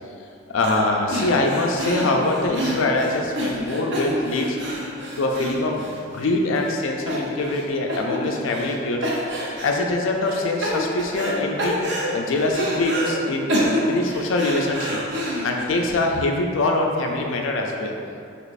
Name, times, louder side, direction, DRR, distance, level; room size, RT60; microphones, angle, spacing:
voice 1, 0.5-4.6 5.2-9.1 9.6-11.8 12.1-13.5 13.8-15.0 15.4-17.9, left 2 dB, 75° left, 1 dB, 0.4 m, -23 dB
sound 1, 0.6-0.8 1.1-6.3 6.6-6.7 7.1-7.6 7.9-8.8 9.0-9.8 10.2-11.3 11.6-13.1 13.5-15.6, equal, 60° right, 0.7 m, -27 dB
6.2 x 2.9 x 2.5 m, 2.5 s
head